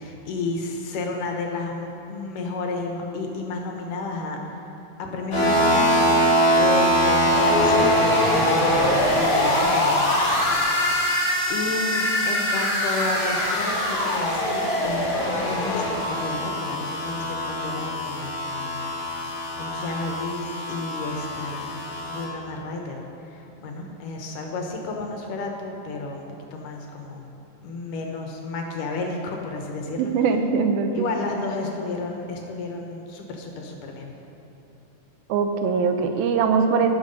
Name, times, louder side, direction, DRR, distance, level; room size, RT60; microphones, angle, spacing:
voice 1, 0.0-4.6 5.0-10.5 11.0-26.2 26.5-27.3 27.6-30.1 30.9-34.1, left 3 dB, 70° left, 2 dB, 2.5 m, -32 dB
sound 1, 5.3-22.2, equal, 30° left, 2.7 m, -23 dB
voice 2, 30.0-31.1 35.3-36.9, right 5 dB, 85° right, 6 dB, 2.6 m, -22 dB
19.0 x 6.4 x 5.3 m, 2.8 s
omnidirectional pair, 4.1 m